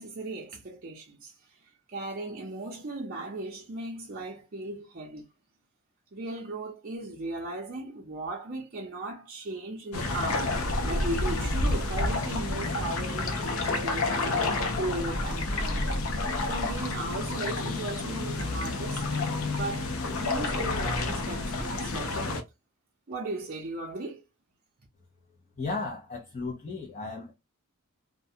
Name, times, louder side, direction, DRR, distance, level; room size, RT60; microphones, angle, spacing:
voice 1, 0.0-1.5 1.9-5.3 6.1-10.5 10.8-15.9 16.5-19.2 19.5-22.5 23.1-24.2, right 2 dB, 45° right, 0.6 m, -37 dB
sound 1, 9.9-22.4, left 2 dB, 80° left, 0.6 m, -29 dB
voice 2, 25.6-27.3, left 3 dB, 35° left, 0.6 m, -35 dB
2.3 x 2.2 x 2.7 m
head